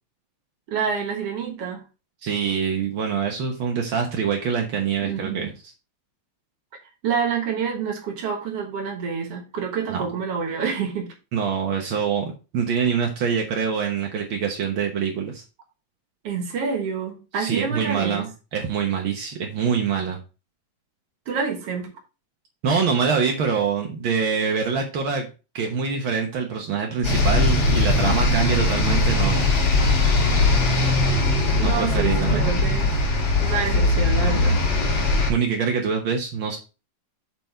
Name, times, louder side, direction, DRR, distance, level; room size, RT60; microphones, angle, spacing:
voice 1, 0.7-1.8 5.0-5.5 7.0-11.1 16.2-18.3 21.3-21.9 31.6-33.0 33.4-34.6, right 6 dB, 55° right, 2.0 m, -27 dB
voice 2, 2.2-5.5 9.9-10.0 11.3-15.4 17.4-20.2 22.6-25.3 25.5-29.5 31.6-32.6 35.3-36.6, right 6 dB, 75° right, 1.1 m, -25 dB
sound 1, 27.0-35.3, left 2 dB, 50° left, 3.9 m, -20 dB
7.8 x 4.6 x 4.4 m
omnidirectional pair, 3.8 m